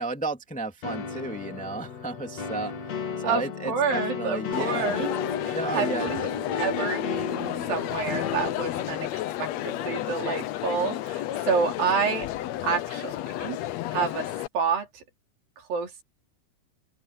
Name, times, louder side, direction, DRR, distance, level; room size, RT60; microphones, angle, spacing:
voice 1, 0.0-2.7 3.2-4.9 5.5-6.1, right 3 dB, 5° left, 1.9 m, -33 dB
sound 1, 0.8-9.1, left 5 dB, 50° left, 3.2 m, -34 dB
voice 2, 3.2-5.2 5.4-6.3 6.6-12.3 12.6-13.6 13.9-15.0 15.7-16.0, right 5 dB, 80° right, 5.5 m, -29 dB
Crowd, 4.5-14.5, left 14 dB, 85° left, 1.5 m, -32 dB
open air
omnidirectional pair, 4.0 m